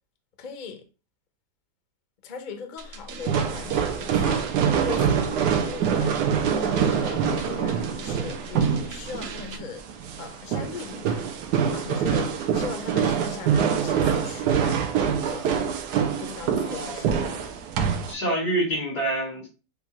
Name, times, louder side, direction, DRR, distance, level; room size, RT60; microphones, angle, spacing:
voice 1, 0.4-0.9 2.2-9.9 10.2-11.3 11.7-14.9 15.3-15.6 16.2-17.2, left 5 dB, 45° left, 0.6 m, -39 dB
sound 1, 2.8-9.6, right 3 dB, 60° right, 0.6 m, -40 dB
sound 2, 3.2-18.1, right 7 dB, 80° right, 1.2 m, -25 dB
voice 2, 16.6-17.7 18.1-19.5, right 1 dB, 85° left, 2.9 m, -28 dB
6.6 x 2.4 x 2.9 m
omnidirectional pair, 1.8 m